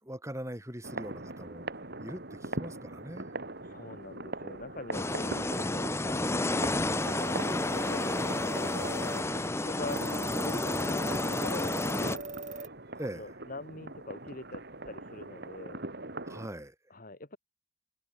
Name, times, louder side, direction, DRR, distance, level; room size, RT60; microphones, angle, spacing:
voice 1, 0.0-1.7 2.0-3.3 5.3-5.5 13.0-13.3 16.2-16.7, right 1 dB, 15° right, 4.5 m, -41 dB
sound 1, 0.8-16.5, right 2 dB, 55° right, 2.9 m, -42 dB
voice 2, 3.6-7.4 7.7-8.2 8.6-12.2 13.1-15.8 16.9-17.4, left 2 dB, 45° left, 2.4 m, -43 dB
sound 2, 4.9-12.2, left 2 dB, 15° left, 0.8 m, -31 dB
sound 3, 6.5-12.7, right 3 dB, 40° right, 6.0 m, -42 dB
head